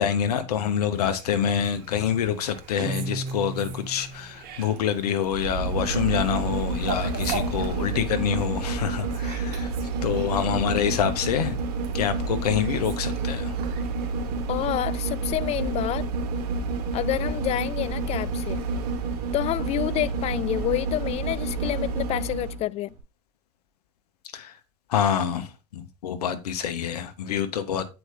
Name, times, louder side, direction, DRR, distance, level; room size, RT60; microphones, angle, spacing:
voice 1, 0.0-9.7 10.0-11.6 11.9-13.5 24.3-24.6 24.9-27.9, left 8 dB, 70° left, 1.1 m, -26 dB
Fowl, 0.9-18.9, right 5 dB, 50° right, 1.9 m, -43 dB
Guitar, 2.8-4.5, right 3 dB, 20° right, 0.8 m, -34 dB
sound 1, 5.3-22.6 23.0-23.1, right 4 dB, 65° right, 1.3 m, -29 dB
voice 2, 14.5-16.1 16.9-18.6 19.3-22.9, left 14 dB, 30° left, 0.3 m, -28 dB
8.1 x 4.8 x 3.8 m
figure-of-eight pair, 80°, 21 cm